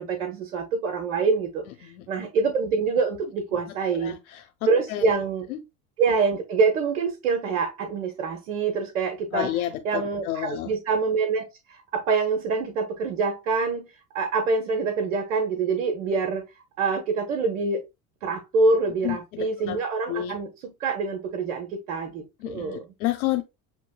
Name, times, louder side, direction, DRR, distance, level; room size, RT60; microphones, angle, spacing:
voice 1, 0.0-4.1 4.7-5.4 6.0-9.5 9.8-13.9 14.1-16.4 16.8-17.8 18.2-20.5 20.8-22.9, right 4 dB, 90° right, 1.1 m, -25 dB
voice 2, 1.8-2.3 3.5-3.6 3.9-4.4 4.9-5.1 5.5-5.6 9.3-10.7 19.0-19.8 20.1-20.4 22.4-23.4, left 14 dB, 80° left, 0.8 m, -30 dB
7.2 x 3.0 x 2.2 m
hypercardioid pair, 95°, 42 cm